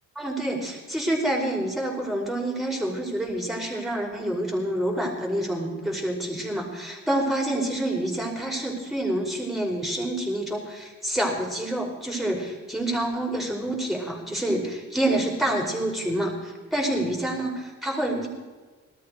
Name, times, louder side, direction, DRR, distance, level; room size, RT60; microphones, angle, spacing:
voice 1, 0.2-18.3, right 1 dB, ahead, -2 dB, 5.4 m, -27 dB
18.5 x 13.5 x 4.9 m, 1.4 s
cardioid pair, 90°, 30 cm